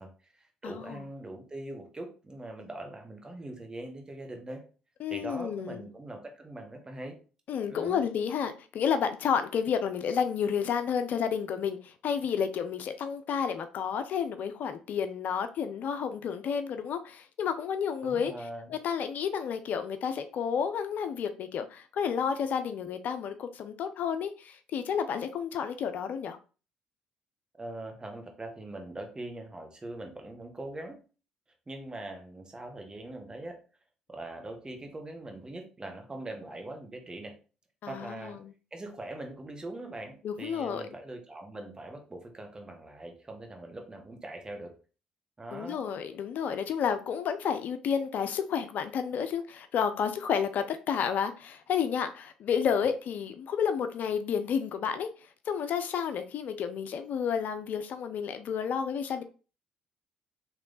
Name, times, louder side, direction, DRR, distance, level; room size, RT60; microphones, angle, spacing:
voice 1, 0.0-4.7 5.1-7.2 7.7-8.0 18.0-18.7 27.6-31.0 31.7-33.6 34.1-37.4 37.9-38.4 38.7-44.8 45.4-45.8, right 2 dB, 20° right, 1.2 m, -42 dB
voice 2, 0.6-1.0 5.0-5.9 7.5-18.3 18.7-26.4 37.8-38.5 40.2-40.8 45.5-55.1 55.5-59.2, left 7 dB, 55° left, 0.4 m, -31 dB
3.2 x 3.0 x 3.9 m
hypercardioid pair, 50°, 3 cm